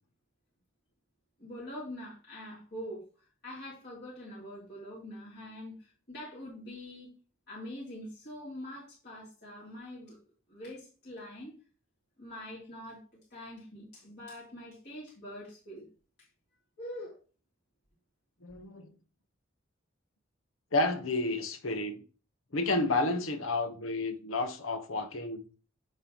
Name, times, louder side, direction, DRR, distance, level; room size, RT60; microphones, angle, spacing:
voice 1, 1.4-7.1 7.5-10.2 10.5-11.5 12.2-13.0 13.3-15.9 16.2-16.3 16.8-17.2, left 1 dB, 55° left, 3.2 m, -44 dB
voice 2, 18.4-18.9 20.7-22.0 22.5-25.4, left 2 dB, 85° left, 1.2 m, -31 dB
9.2 x 5.5 x 3.0 m
head